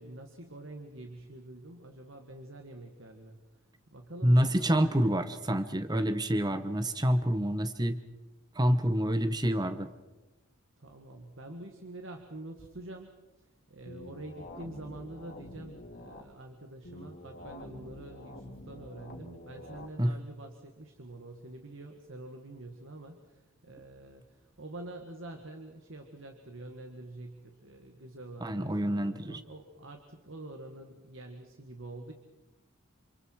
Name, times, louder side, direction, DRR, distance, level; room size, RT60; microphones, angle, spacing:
voice 1, 0.0-3.4 3.9-5.3 10.8-32.1, right 2 dB, 65° right, 4 dB, 1.9 m, -46 dB
voice 2, 4.2-8.0 8.5-9.9 20.0-20.1 28.4-29.4, equal, 20° right, 10 dB, 1.0 m, -27 dB
sound 1, 13.9-16.2 16.8-19.9, left 1 dB, 50° left, 3.0 m, -47 dB
28.0 x 27.5 x 4.7 m, 1.1 s
head